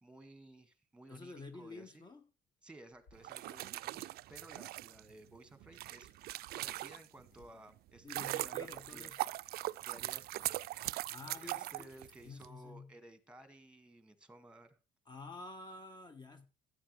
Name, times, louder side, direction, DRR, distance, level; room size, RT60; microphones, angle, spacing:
voice 1, 0.0-2.0 2.6-6.1 6.6-9.1 9.8-10.5 11.3-14.8, right 1 dB, 5° right, 1.9 m, -56 dB
voice 2, 1.1-2.3 8.0-9.2 11.1-11.9 12.2-12.9 15.0-16.5, left 3 dB, 25° left, 1.4 m, -49 dB
sound 1, 2.8-12.4, left 3 dB, 85° left, 3.9 m, -73 dB
sound 2, 3.2-7.3 7.8-12.5, right 16 dB, 65° right, 0.4 m, -40 dB
12.5 x 9.4 x 3.3 m
cardioid pair, 110°, 17 cm